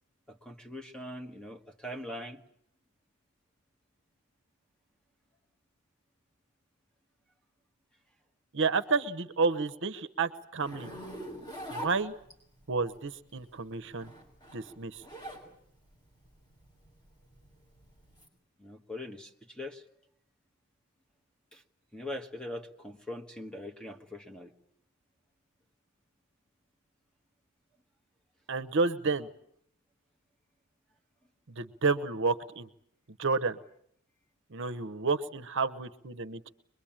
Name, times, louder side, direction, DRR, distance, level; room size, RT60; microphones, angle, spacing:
voice 1, 0.3-2.4 18.6-19.8 21.5-21.6 21.9-24.5, left 1 dB, 5° left, 5 dB, 1.4 m, -42 dB
voice 2, 8.5-10.9 11.7-12.1 12.7-14.1 14.5-15.0 28.5-29.3 31.6-32.7 33.2-33.6 34.5-36.5, right 4 dB, 55° right, 11 dB, 0.9 m, -30 dB
Zipper (clothing), 10.6-12.6 13.8-15.5 15.8-18.3, equal, 20° left, 5.7 m, -43 dB
23.0 x 22.0 x 8.8 m, 0.70 s
head